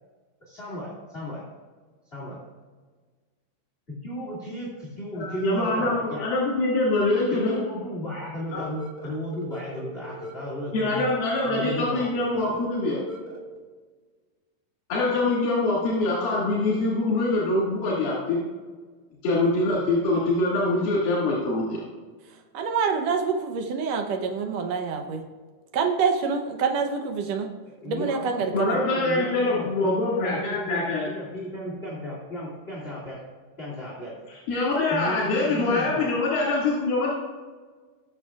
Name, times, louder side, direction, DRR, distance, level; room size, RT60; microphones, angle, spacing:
voice 1, 0.4-1.4 2.1-2.4 3.9-6.2 7.3-11.0 11.4-12.6 27.7-33.2 33.6-34.2 34.9-36.2, equal, 20° left, -7 dB, 1.8 m, -35 dB
voice 2, 5.2-7.6 8.5-8.6 10.7-13.0 14.9-18.4 19.2-21.8 28.5-31.1 34.5-37.1, left 2 dB, 80° left, -7 dB, 3.9 m, -24 dB
sound 1, 8.6-13.6, right 1 dB, 15° right, 2.1 m, -40 dB
voice 3, 22.5-25.2 25.7-27.5 27.9-28.8, right 5 dB, 80° right, 4 dB, 1.5 m, -26 dB
20.5 x 7.0 x 2.4 m, 1.4 s
omnidirectional pair, 4.2 m